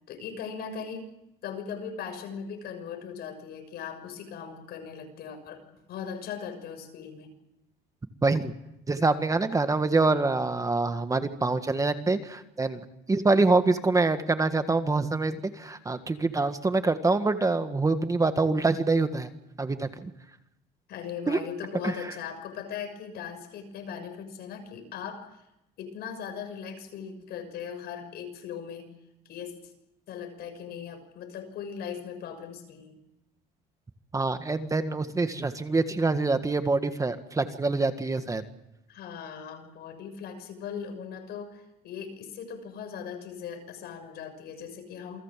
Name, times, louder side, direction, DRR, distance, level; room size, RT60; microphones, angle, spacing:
voice 1, 0.1-1.1 1.4-7.3 20.9-25.5 25.8-28.9 29.2-29.7 30.1-33.0 38.9-45.2, left 7 dB, 70° left, 7 dB, 6.4 m, -39 dB
voice 2, 8.2-8.5 8.9-19.3 19.6-20.1 21.3-21.4 21.8-21.9 34.1-38.4, right 3 dB, 20° right, 9 dB, 1.7 m, -25 dB
28.0 x 20.0 x 7.6 m, 0.86 s
cardioid pair, 110°, 17 cm